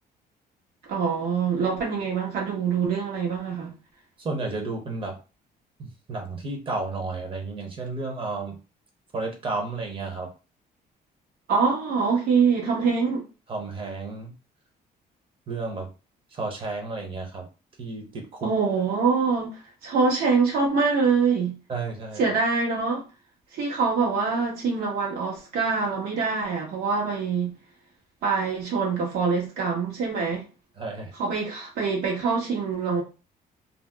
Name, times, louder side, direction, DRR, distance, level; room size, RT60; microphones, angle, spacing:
voice 1, 0.9-3.7 11.5-13.2 18.4-21.6 22.2-23.0 23.5-27.5 28.2-30.4 31.2-33.0, right 5 dB, 75° right, 1.3 m, -24 dB
voice 2, 4.2-5.2 5.8-8.6 9.1-10.3 13.5-14.3 15.5-15.9 16.3-17.5 17.8-18.5 21.7-22.3 30.8-31.1, right 3 dB, 35° right, 0.8 m, -32 dB
2.6 x 2.0 x 3.4 m
cardioid pair, 160°, 16 cm